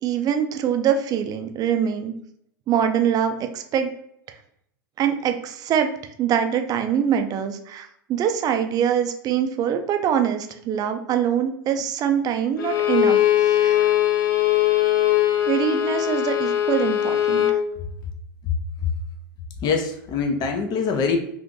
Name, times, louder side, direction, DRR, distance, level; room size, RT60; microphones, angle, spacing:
voice 1, 0.0-2.1 2.7-3.9 5.0-5.9 6.2-13.2 13.5-13.9 15.5-17.6, right 8 dB, 35° right, 7 dB, 0.5 m, -23 dB
Bowed string instrument, 12.6-17.6, left 12 dB, 80° left, 0.5 m, -20 dB
voice 2, 18.4-18.9 19.6-21.2, left 5 dB, 40° left, 4 dB, 0.6 m, -24 dB
2.6 x 2.5 x 3.6 m, 0.72 s
hypercardioid pair, 95°, 11 cm